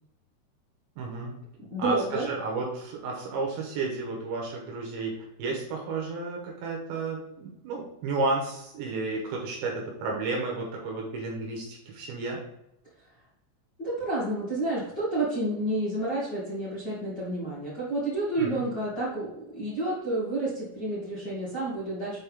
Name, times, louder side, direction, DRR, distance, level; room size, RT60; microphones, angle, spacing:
voice 1, 1.0-1.3 1.8-12.4 18.4-18.6, right 3 dB, 70° right, -1 dB, 3.3 m, -32 dB
voice 2, 1.7-2.3 13.8-22.2, right 2 dB, 30° left, -11 dB, 2.3 m, -30 dB
8.2 x 4.3 x 3.6 m, 0.83 s
omnidirectional pair, 5.8 m